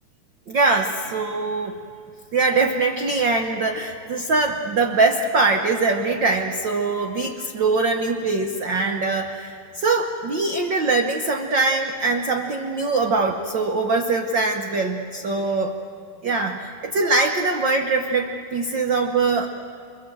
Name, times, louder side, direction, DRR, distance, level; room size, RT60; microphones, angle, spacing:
voice 1, 0.5-1.7 2.3-15.8 16.2-19.5, right 3 dB, 90° right, 3 dB, 1.0 m, -22 dB
29.0 x 22.5 x 7.8 m, 2.4 s
omnidirectional pair, 3.6 m